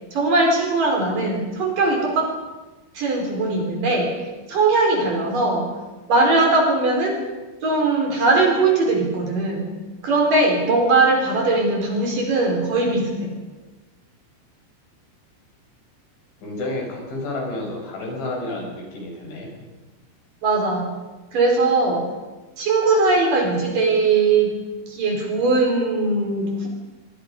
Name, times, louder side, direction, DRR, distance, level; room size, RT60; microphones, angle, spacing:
voice 1, 0.1-2.3 2.9-4.1 4.5-5.7 6.1-7.2 7.6-9.7 10.0-13.4 20.4-20.9 21.3-22.1 22.6-24.5 24.9-26.7, right 3 dB, 45° right, 1 dB, 5.5 m, -20 dB
voice 2, 16.4-19.5, left 2 dB, 70° left, -1 dB, 8.6 m, -30 dB
25.5 x 24.0 x 5.3 m, 1.2 s
omnidirectional pair, 5.5 m